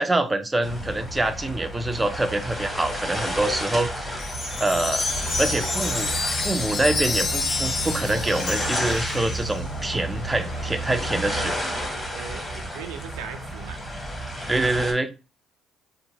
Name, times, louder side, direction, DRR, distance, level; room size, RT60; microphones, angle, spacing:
voice 1, 0.0-4.2 4.6-5.1 5.4-11.5 14.5-15.1, right 2 dB, 15° right, 0.4 m, -25 dB
sound 1, 0.6-14.9, equal, 10° left, 1.0 m, -32 dB
Wind chime, 4.2-9.6, left 3 dB, 55° left, 0.8 m, -28 dB
sound 2, 5.0-11.6, right 3 dB, 75° left, 1.3 m, -34 dB
voice 2, 11.2-11.8 12.1-12.5 12.7-13.8, right 7 dB, 85° right, 0.4 m, -39 dB
2.8 x 2.2 x 2.7 m
supercardioid pair, 65°, 0 cm